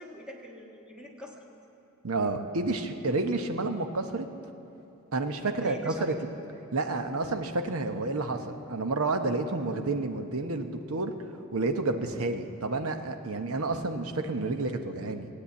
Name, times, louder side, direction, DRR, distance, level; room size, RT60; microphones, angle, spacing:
voice 1, 0.0-1.4 5.4-6.1, right 2 dB, 5° right, -1 dB, 1.4 m, -42 dB
voice 2, 2.0-4.3 5.1-6.1 6.7-11.1 11.5-15.3, right 2 dB, 75° right, 7 dB, 0.9 m, -30 dB
17.5 x 8.7 x 8.4 m, 2.8 s
head